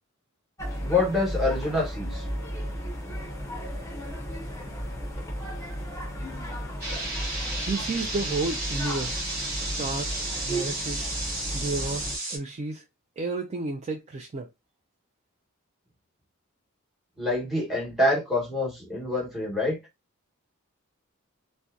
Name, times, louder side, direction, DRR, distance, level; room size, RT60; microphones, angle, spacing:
sound 1, 0.6-12.2, equal, 15° left, 0.7 m, -34 dB
voice 1, 0.8-2.2 17.2-19.8, left 2 dB, ahead, 1.1 m, -26 dB
sound 2, 6.8-12.4, right 2 dB, 50° right, 1.1 m, -33 dB
voice 2, 7.6-9.3 9.6-11.1 11.5-12.8 13.2-14.5, right 3 dB, 30° right, 0.3 m, -32 dB
2.6 x 2.1 x 2.3 m
head